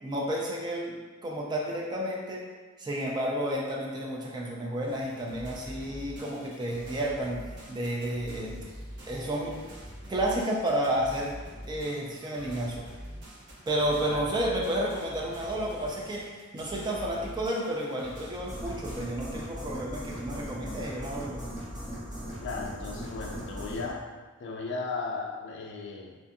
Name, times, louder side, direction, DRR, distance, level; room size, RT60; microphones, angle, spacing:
voice 1, 0.0-2.5 2.8-8.6 9.1-9.6 10.1-11.4 11.7-12.9 13.7-21.4, right 1 dB, 20° right, -3 dB, 0.3 m, -31 dB
sound 1, 4.9-19.0, equal, 55° right, 0.6 m, -44 dB
sound 2, 18.5-23.9, equal, 35° right, 1.3 m, -39 dB
voice 2, 22.4-24.1 24.4-26.2, left 4 dB, 55° left, 1 dB, 0.3 m, -36 dB
2.5 x 2.5 x 2.5 m, 1.3 s
head